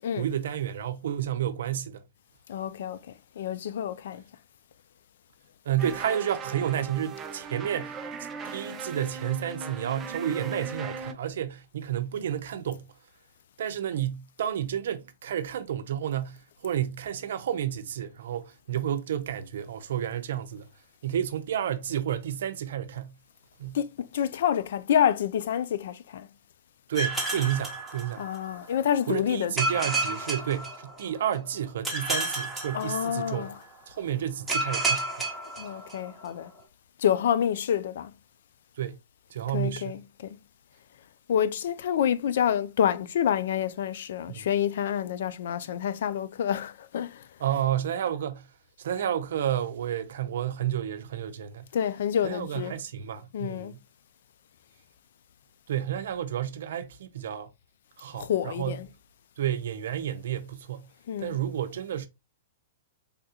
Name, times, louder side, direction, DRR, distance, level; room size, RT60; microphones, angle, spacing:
voice 1, 0.2-2.0 5.6-8.0 8.4-12.9 13.6-20.7 21.0-23.2 23.6-23.8 26.9-28.3 29.1-33.5 33.9-35.1 38.8-39.0 39.3-40.0 44.3-44.5 47.4-48.5 48.8-51.7 52.2-53.8 55.7-57.5 58.0-58.8 59.4-60.9 61.2-62.1, right 10 dB, 70° right, 0.5 m, -31 dB
voice 2, 2.5-4.2 23.7-26.3 28.2-29.6 32.7-33.6 35.6-36.5 37.0-38.1 39.5-40.4 41.3-47.3 51.7-52.7 53.3-53.7 58.1-58.9 61.1-61.4, left 9 dB, 65° left, 0.3 m, -28 dB
sound 1, 5.8-11.1, right 4 dB, 20° right, 0.4 m, -38 dB
sound 2, 27.0-28.6 29.6-31.3 31.8-33.5 34.5-36.2, right 2 dB, ahead, 0.9 m, -31 dB
3.4 x 2.3 x 2.8 m
hypercardioid pair, 145°, 0 cm